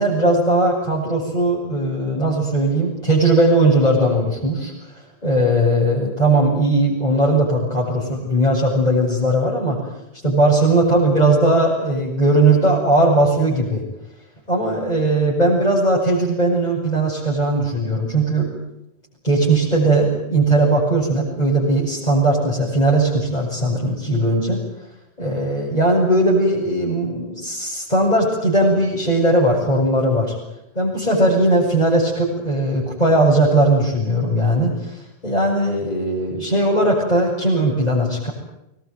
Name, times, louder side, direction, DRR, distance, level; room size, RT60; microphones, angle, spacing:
voice 1, 0.0-4.7 5.2-9.8 10.2-13.8 14.5-18.5 19.2-24.6 25.2-30.3 30.7-38.3, right 1 dB, 40° left, -6 dB, 8.1 m, -18 dB
25.5 x 22.0 x 9.0 m, 0.85 s
omnidirectional pair, 1.1 m